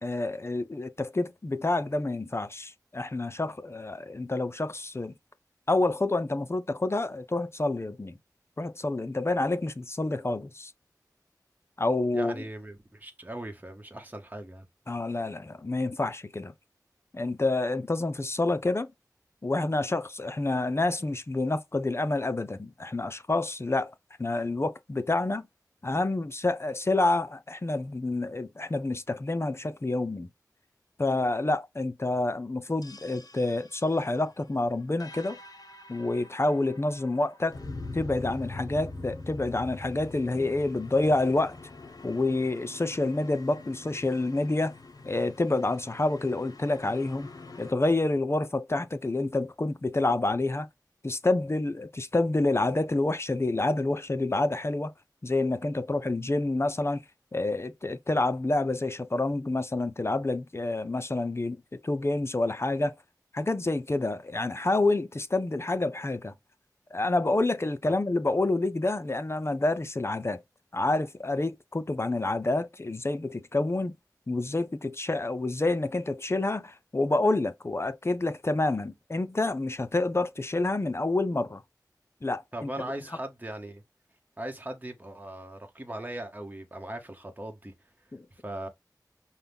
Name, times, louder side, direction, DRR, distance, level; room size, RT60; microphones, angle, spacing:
voice 1, 0.0-5.1 5.7-8.2 8.6-10.7 11.8-12.4 14.9-16.5 17.1-18.9 19.4-23.9 24.2-25.5 25.8-30.3 31.0-35.4 35.9-37.6 37.9-41.6 42.0-44.7 45.0-47.3 47.6-50.7 51.0-54.9 55.2-57.0 57.3-62.9 63.3-66.3 66.9-70.4 70.7-73.9 74.3-81.6 82.2-82.7 88.1-88.3, left 2 dB, 40° left, 0.6 m, -28 dB
voice 2, 12.1-14.7 67.9-68.0 82.5-83.8 84.4-87.7 88.3-88.7, right 1 dB, 25° right, 1.0 m, -39 dB
sound 1, 32.8-47.7, left 2 dB, 60° left, 0.9 m, -44 dB
5.6 x 2.3 x 3.4 m
wide cardioid pair, 55°, 7 cm